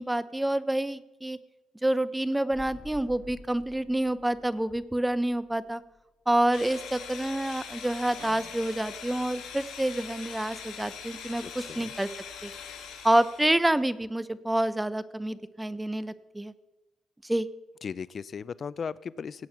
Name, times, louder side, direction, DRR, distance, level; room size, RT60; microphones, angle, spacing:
voice 1, 0.0-1.4 1.8-5.8 6.3-12.1 12.4-12.5 13.0-16.5 17.2-17.5, right 1 dB, 10° right, 16 dB, 0.7 m, -28 dB
sound 1, 2.5-6.2 6.5-6.6, left 2 dB, 15° left, 2.3 m, -50 dB
sound 2, 6.5-13.5, left 7 dB, 85° left, 3.9 m, -42 dB
sound 3, 8.2-11.4, right 5 dB, 75° right, 2.0 m, -56 dB
voice 2, 11.4-11.9 17.8-19.5, left 6 dB, 45° left, 19 dB, 0.4 m, -37 dB
17.5 x 8.6 x 5.9 m, 1.1 s
cardioid pair, 90°, 0 cm